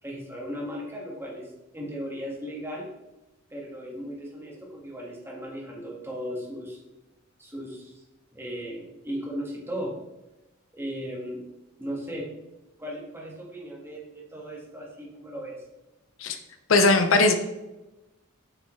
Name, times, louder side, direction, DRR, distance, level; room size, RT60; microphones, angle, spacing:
voice 1, 0.0-2.9 3.5-6.8 7.4-8.0 8.3-9.9 10.7-11.4 11.8-12.3 12.8-15.6, equal, 10° right, -3 dB, 1.7 m, -36 dB
voice 2, 16.7-17.3, left 3 dB, 70° left, 6 dB, 0.7 m, -19 dB
8.0 x 5.4 x 3.2 m, 0.99 s
head